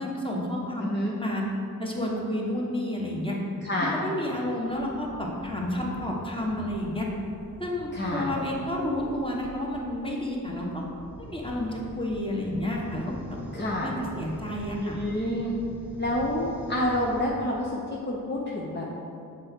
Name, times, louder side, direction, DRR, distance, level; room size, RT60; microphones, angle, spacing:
voice 1, 0.0-0.9 1.2-1.4 1.8-3.4 4.0-7.1 7.6-10.8 11.2-14.9, left 1 dB, 15° left, -2 dB, 1.4 m, -30 dB
voice 2, 0.8-1.1 3.6-4.0 7.9-8.3 13.5-13.9 14.8-15.5 16.0-18.9, left 1 dB, 30° left, -4 dB, 0.9 m, -28 dB
sound 1, 4.6-17.3, right 1 dB, 5° right, 1.2 m, -45 dB
6.2 x 4.6 x 4.6 m, 2.6 s
cardioid pair, 50°, 36 cm